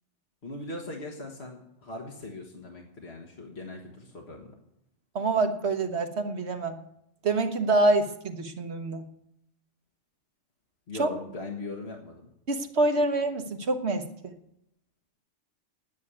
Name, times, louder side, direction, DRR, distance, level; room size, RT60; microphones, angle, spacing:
voice 1, 0.4-4.5 10.9-12.3, left 2 dB, 65° left, 0 dB, 1.9 m, -40 dB
voice 2, 5.1-6.8 7.2-9.0 11.0-11.1 12.5-14.1, right 2 dB, 70° right, 7 dB, 1.4 m, -26 dB
9.5 x 9.5 x 9.7 m, 0.79 s
omnidirectional pair, 1.2 m